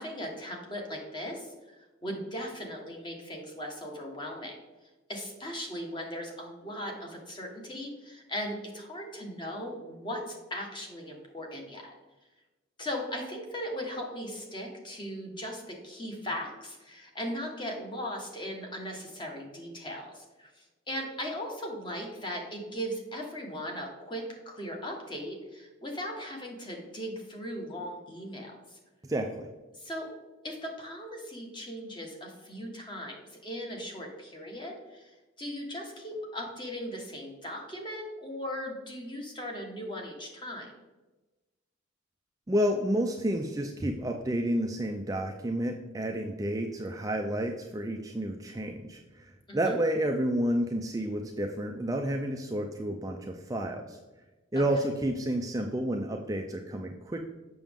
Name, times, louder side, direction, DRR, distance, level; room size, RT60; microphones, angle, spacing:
voice 1, 0.0-4.6 5.1-11.9 12.8-28.8 29.7-30.1 30.4-40.7 49.5-49.6 54.5-54.6, equal, 25° left, 1 dB, 1.2 m, -38 dB
voice 2, 29.0-29.5 42.5-54.0 54.5-57.2, right 1 dB, 15° right, 2 dB, 0.4 m, -30 dB
7.3 x 6.1 x 3.5 m, 1.1 s
head